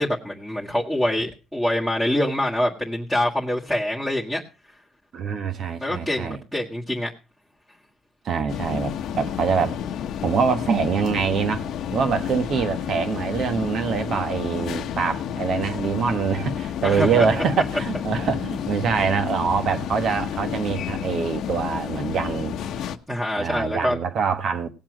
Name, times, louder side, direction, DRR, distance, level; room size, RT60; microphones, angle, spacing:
voice 1, 0.0-4.4 5.8-7.1 16.8-17.3 23.1-24.0, left 1 dB, 5° right, 1.8 m, -25 dB
voice 2, 5.1-6.4 8.2-9.8 10.2-11.7 11.9-22.9 23.4-24.7, right 6 dB, 55° right, 1.4 m, -24 dB
sound 1, 8.5-23.0, left 9 dB, 65° left, 1.0 m, -30 dB
17.5 x 7.3 x 6.2 m
cardioid pair, 120°, 0 cm